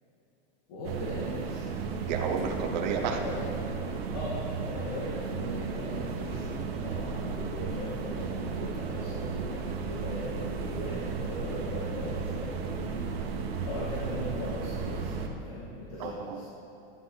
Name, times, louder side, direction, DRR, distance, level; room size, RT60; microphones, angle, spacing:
voice 1, 0.7-1.6 3.1-3.4 4.1-13.0 13.6-16.4, left 1 dB, 45° left, -6 dB, 2.3 m, -39 dB
sound 1, 0.8-15.3, right 5 dB, 85° right, 1.5 m, -34 dB
voice 2, 2.0-3.2 5.5-5.7 6.7-6.9 12.9-13.1 16.0-16.4, right 6 dB, 45° right, 1 dB, 1.0 m, -32 dB
13.0 x 9.6 x 4.1 m, 2.9 s
supercardioid pair, 175°, 30 cm